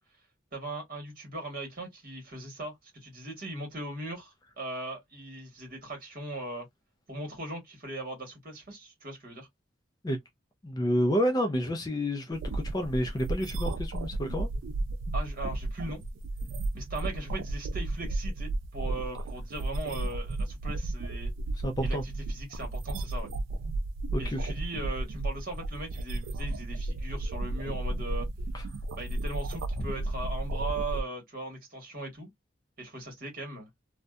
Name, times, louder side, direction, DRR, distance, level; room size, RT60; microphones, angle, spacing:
voice 1, 0.5-6.7 7.1-9.5 15.1-16.0 16.7-21.3 21.8-23.3 24.2-28.3 28.9-32.3 32.8-33.7, right 2 dB, 45° right, 1.3 m, -39 dB
voice 2, 10.6-14.5 21.5-22.0 24.1-24.5 28.5-28.6 29.8-29.9, equal, 20° left, 0.3 m, -29 dB
sound 1, 12.3-31.0, right 2 dB, 80° right, 0.3 m, -33 dB
2.6 x 2.1 x 2.3 m
head